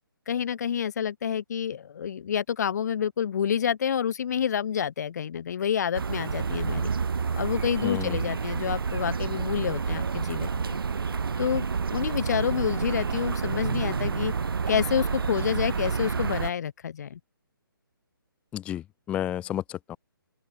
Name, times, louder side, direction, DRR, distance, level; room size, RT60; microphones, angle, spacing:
voice 1, 0.3-6.9 7.3-10.8 11.4-11.7 11.9-14.3 14.7-17.2, left 8 dB, 45° left, 0.9 m, -28 dB
sound 1, 5.9-16.5, right 5 dB, 75° right, 0.5 m, -29 dB
voice 2, 7.8-8.2 18.5-20.0, left 11 dB, 10° left, 0.5 m, -32 dB
open air
figure-of-eight pair, 140°, 12 cm